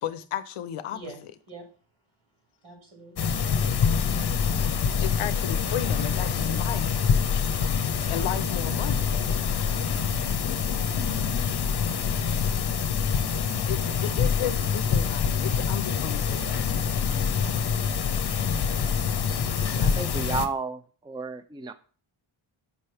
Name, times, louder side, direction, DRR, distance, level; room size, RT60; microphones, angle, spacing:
voice 1, 0.0-1.0 5.0-6.9 8.1-9.1 13.7-17.1, left 11 dB, 90° left, 0.6 m, -34 dB
voice 2, 0.9-1.2 1.5-1.6 2.6-3.3 6.5-6.9 9.1-9.6, right 2 dB, 70° right, 2.8 m, -45 dB
sound 1, 3.2-20.5, left 6 dB, 50° left, 0.7 m, -25 dB
voice 3, 19.7-20.8 21.1-21.7, right 4 dB, 10° right, 0.4 m, -32 dB
5.2 x 3.3 x 5.6 m
cardioid pair, 65°, 50 cm